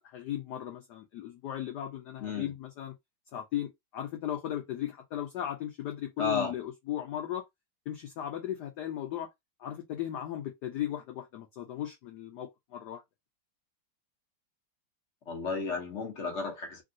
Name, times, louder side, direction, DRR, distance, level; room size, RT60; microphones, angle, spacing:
voice 1, 0.0-2.9 3.3-7.4 7.9-9.3 9.6-13.0, left 11 dB, 90° left, 0.9 m, -36 dB
voice 2, 6.2-6.5 15.3-16.8, left 5 dB, 55° left, 0.8 m, -33 dB
3.4 x 2.5 x 2.6 m
omnidirectional pair, 2.4 m